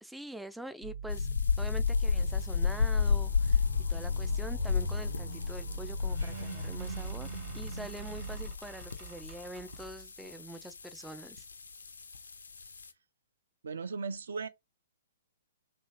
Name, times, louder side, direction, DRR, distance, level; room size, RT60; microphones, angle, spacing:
voice 1, 0.0-1.3 1.6-3.6 3.9-7.3 7.5-11.5, right 1 dB, 5° right, 0.3 m, -45 dB
sound 1, 0.8-8.5, right 4 dB, 85° right, 0.9 m, -41 dB
sound 2, 1.1-12.9, left 5 dB, 70° left, 0.4 m, -33 dB
sound 3, 6.0-10.1, right 5 dB, 40° right, 1.0 m, -51 dB
voice 2, 13.6-14.5, right 4 dB, 60° right, 0.5 m, -36 dB
2.9 x 2.7 x 2.7 m
figure-of-eight pair, 115°, 0 cm